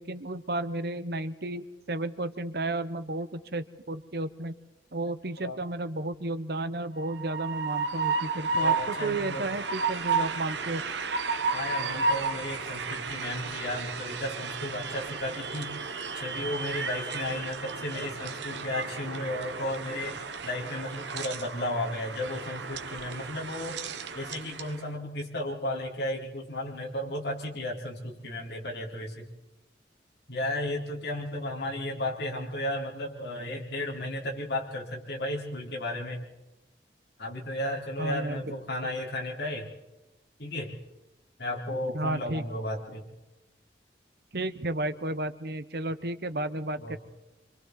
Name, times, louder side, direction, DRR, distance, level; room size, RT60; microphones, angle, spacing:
voice 1, 0.0-4.6 4.9-10.8 38.0-38.6 41.9-42.4 44.3-47.0, right 2 dB, 60° right, 11 dB, 1.0 m, -32 dB
Train, 7.0-24.8, right 4 dB, 80° right, 1.1 m, -33 dB
voice 2, 8.6-9.4 11.5-15.8 16.1-23.8 24.1-29.3 30.3-36.2 37.2-39.7 40.4-40.7 41.4-43.0 46.8-47.0, left 1 dB, 65° left, -2 dB, 4.1 m, -34 dB
26.5 x 25.5 x 4.1 m, 1.0 s
head